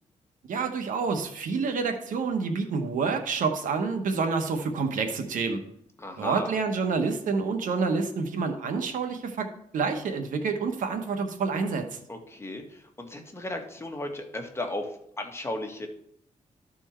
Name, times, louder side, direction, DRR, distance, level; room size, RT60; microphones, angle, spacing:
voice 1, 0.5-5.6 6.2-9.5 9.7-12.0, right 4 dB, 85° right, 6 dB, 1.2 m, -28 dB
voice 2, 6.0-6.6 12.1-15.9, left 1 dB, 20° left, 3 dB, 1.6 m, -35 dB
13.5 x 4.5 x 4.4 m, 0.71 s
cardioid pair, 95°, 13 cm